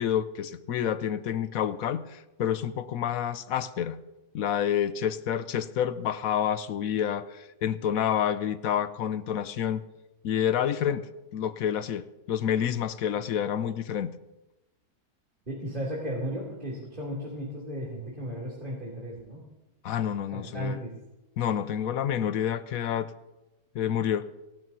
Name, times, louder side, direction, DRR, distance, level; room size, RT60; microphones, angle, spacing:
voice 1, 0.0-4.0 4.3-9.8 10.2-11.1 11.3-14.1 19.8-20.8 21.4-23.1 23.7-24.2, left 9 dB, 75° left, 13 dB, 1.1 m, -28 dB
voice 2, 15.5-19.5 20.3-20.9, equal, 35° right, -5 dB, 3.3 m, -35 dB
29.5 x 12.0 x 2.8 m, 1.0 s
omnidirectional pair, 1.6 m